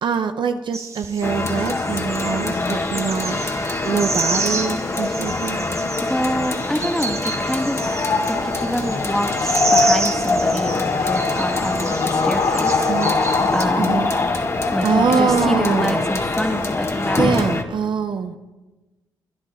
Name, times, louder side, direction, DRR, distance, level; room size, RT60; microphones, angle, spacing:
voice 1, 0.0-3.4 3.8-5.7 12.8-13.2 13.8-14.1 14.8-16.1 17.2-18.4, right 6 dB, 65° right, 8 dB, 0.9 m, -23 dB
sound 1, 0.7-13.6, right 3 dB, 35° right, 1.3 m, -30 dB
sound 2, 1.2-17.6, left 2 dB, 30° left, 1.8 m, -25 dB
voice 2, 6.0-8.0 8.3-14.0 14.7-17.6, equal, 5° left, 4 dB, 2.0 m, -26 dB
sound 3, 7.6-17.3, left 4 dB, 75° left, 2.6 m, -24 dB
22.5 x 10.5 x 4.3 m, 1.1 s
supercardioid pair, 50°, 9 cm